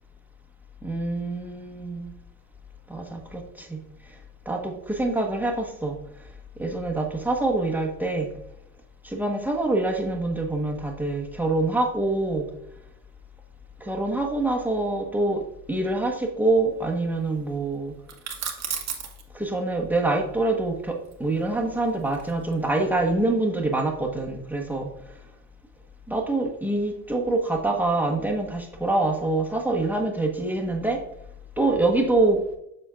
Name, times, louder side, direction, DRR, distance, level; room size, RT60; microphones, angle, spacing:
voice 1, 0.8-2.1 2.9-3.8 4.4-6.0 6.6-8.3 9.0-12.5 13.8-15.4 15.7-17.9 19.3-24.9 26.1-31.0 31.6-32.4, right 2 dB, 5° right, 1 dB, 1.4 m, -25 dB
sound 1, 18.1-19.2 21.0-22.6, right 7 dB, 35° right, 1.4 m, -34 dB
7.1 x 6.6 x 2.5 m, 0.80 s
hypercardioid pair, 65°, 45 cm